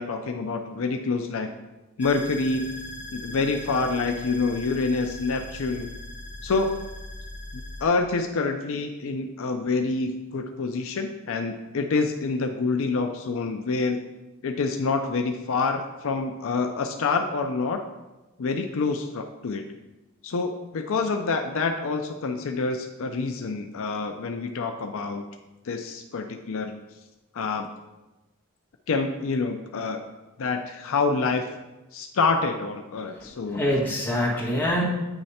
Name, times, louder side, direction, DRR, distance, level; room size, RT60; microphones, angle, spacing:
voice 1, 0.0-1.5 2.0-2.7 3.1-5.9 6.4-6.8 7.5-14.0 14.4-17.8 18.4-19.6 20.2-25.3 25.6-26.8 27.3-27.7 28.9-30.0 30.4-31.4 31.9-33.6, left 4 dB, 65° left, 5 dB, 0.5 m, -27 dB
sound 1, 2.0-7.8, left 1 dB, 5° right, 0.8 m, -39 dB
voice 2, 33.2-34.8, left 1 dB, 10° left, -6 dB, 1.6 m, -25 dB
9.0 x 3.2 x 4.2 m, 1.1 s
head